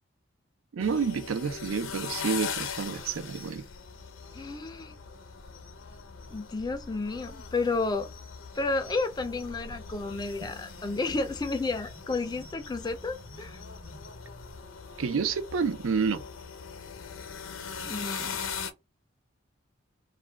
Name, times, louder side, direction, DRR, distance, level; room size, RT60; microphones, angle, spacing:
voice 1, 0.7-3.7 15.0-16.2, right 5 dB, 90° right, 0.4 m, -29 dB
sound 1, 0.8-18.7, left 6 dB, 80° left, 0.6 m, -41 dB
voice 2, 4.3-5.0 6.3-8.1 8.5-13.6 17.8-18.4, left 3 dB, 20° left, 0.3 m, -31 dB
sound 2, 9.5-14.5, equal, 60° right, 0.7 m, -52 dB
2.4 x 2.1 x 3.2 m
head